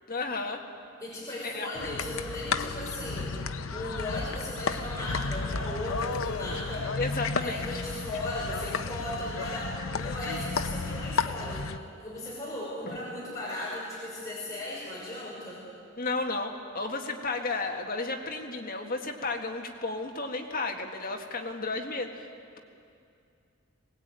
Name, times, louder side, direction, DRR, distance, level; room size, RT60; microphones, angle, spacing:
voice 1, 0.1-0.6 1.4-1.7 7.0-7.6 12.8-13.0 16.0-22.3, left 3 dB, 45° left, 3 dB, 1.8 m, -33 dB
voice 2, 1.0-3.3 3.7-6.9 7.4-11.7 12.0-15.6, left 1 dB, 15° left, -7 dB, 5.8 m, -36 dB
sound 1, 1.7-11.8, left 4 dB, 75° left, 0.7 m, -33 dB
21.5 x 19.0 x 9.0 m, 2.4 s
head